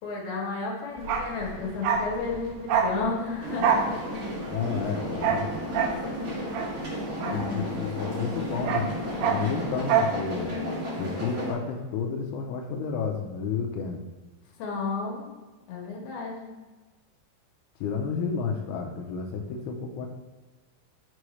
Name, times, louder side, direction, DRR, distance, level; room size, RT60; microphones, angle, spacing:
voice 1, 0.0-4.0 7.2-8.0 14.6-15.3 15.7-16.5, left 4 dB, 65° left, -2 dB, 2.9 m, -33 dB
Bark, 1.0-8.0 8.3-10.2 10.5-10.6, right 6 dB, 85° right, 2.4 m, -28 dB
sound 1, 3.4-11.5, equal, 45° right, 1.2 m, -33 dB
voice 2, 4.5-5.5 7.3-8.9 9.2-10.5 11.0-14.0 17.8-20.1, left 5 dB, 90° left, 2 dB, 2.3 m, -31 dB
6.3 x 5.4 x 3.2 m, 1.3 s
omnidirectional pair, 5.4 m